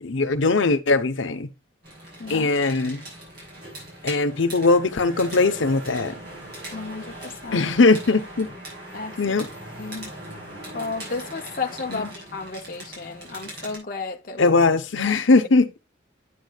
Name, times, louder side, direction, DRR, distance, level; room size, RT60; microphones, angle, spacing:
voice 1, 0.0-1.5 2.3-3.0 4.0-6.1 7.5-8.5 9.2-9.5 11.9-12.1 14.4-15.8, left 3 dB, 75° left, 0.8 m, -20 dB
sound 1, 1.8-13.8, right 1 dB, 50° right, 6.0 m, -40 dB
voice 2, 6.7-7.7 8.9-9.4 9.8-10.1 10.7-14.6 15.0-15.2, left 4 dB, 45° left, 0.7 m, -33 dB
9.4 x 8.0 x 2.3 m
head